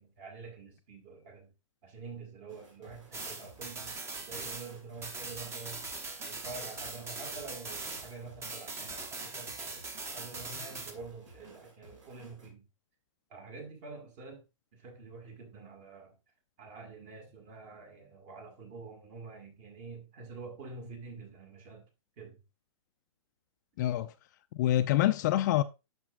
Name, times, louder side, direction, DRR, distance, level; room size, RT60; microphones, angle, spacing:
voice 1, 0.0-1.5 1.8-5.8 6.2-9.8 10.1-12.7 13.3-14.4 14.7-16.2 16.6-21.9 22.2-22.4, right 4 dB, 35° right, 1.8 m, -47 dB
sound 1, 2.5-12.5, right 3 dB, 65° right, 2.4 m, -56 dB
sound 2, 3.1-8.2 8.4-10.9, right 3 dB, 15° right, 0.8 m, -41 dB
voice 2, 23.8-24.1 24.5-25.6, left 13 dB, 35° left, 0.3 m, -26 dB
8.7 x 6.0 x 2.3 m
figure-of-eight pair, 120°, 17 cm